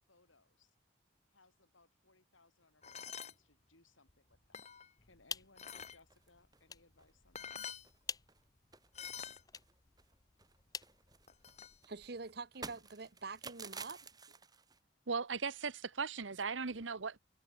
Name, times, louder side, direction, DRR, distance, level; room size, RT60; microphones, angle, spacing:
voice 1, 0.1-0.8 1.3-4.7 5.0-7.6, left 3 dB, 90° left, 7.6 m, -68 dB
sound 1, 2.8-3.3 4.1-4.9 5.6-6.0 7.0-7.1 7.3-7.9 8.9-9.4 11.3-11.8, left 7 dB, 35° left, 2.3 m, -47 dB
sound 2, 5.0-11.8, left 6 dB, 20° left, 0.5 m, -50 dB
sound 3, 6.1-6.6 7.0-7.1 7.4-7.6 7.8-8.4 8.7-10.1 10.4-14.8, right 4 dB, 20° right, 3.9 m, -52 dB
voice 2, 11.8-14.0, right 4 dB, 55° right, 0.9 m, -46 dB
voice 3, 15.1-17.2, right 5 dB, 80° right, 1.1 m, -38 dB
head